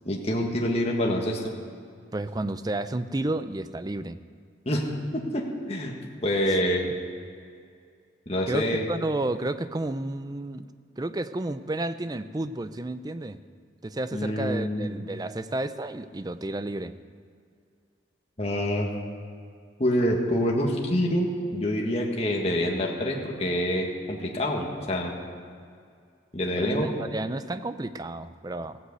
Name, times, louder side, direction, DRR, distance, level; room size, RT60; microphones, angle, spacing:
voice 1, 0.0-1.5 4.6-4.9 5.1-5.9 6.2-6.9 8.3-8.9 14.1-14.9 18.4-18.9 19.8-25.2 26.3-26.9, equal, 35° left, -1 dB, 1.6 m, -26 dB
voice 2, 2.1-4.2 8.5-10.7 11.0-13.4 13.8-17.0 26.6-28.8, right 2 dB, 20° right, 12 dB, 0.4 m, -31 dB
16.5 x 8.1 x 8.0 m, 2.2 s
head